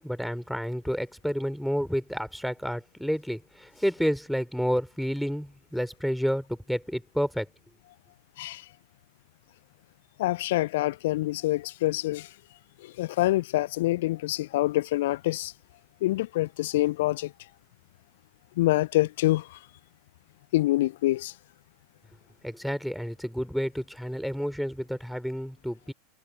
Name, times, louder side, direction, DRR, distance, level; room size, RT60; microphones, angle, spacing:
voice 1, 0.0-7.5 22.4-25.9, equal, ahead, 3.6 m, -30 dB
voice 2, 8.4-8.7 10.2-12.3 12.8-15.5 16.0-17.3 18.6-19.6 20.5-21.3, left 17 dB, 60° left, 0.5 m, -26 dB
figure-of-eight pair, 85°, 0 cm